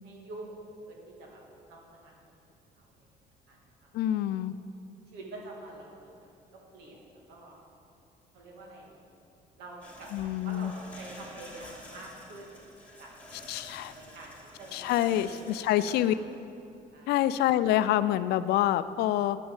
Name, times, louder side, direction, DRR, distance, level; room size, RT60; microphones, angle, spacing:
voice 1, 0.0-0.6 0.9-1.4 1.7-2.3 2.8-3.1 3.5-4.2 5.1-6.3 6.7-7.6 8.3-9.0 9.6-12.6 13.0-16.2 16.9-17.3, right 2 dB, 90° right, -2 dB, 2.2 m, -47 dB
voice 2, 3.9-4.5 10.1-10.7 13.5-13.9 14.7-16.1 17.1-19.4, left 12 dB, 75° left, 14 dB, 0.4 m, -26 dB
sound 1, 9.8-16.7, left 1 dB, 10° left, 2.9 m, -50 dB
9.4 x 6.1 x 7.4 m, 2.6 s
cardioid pair, 110°, 17 cm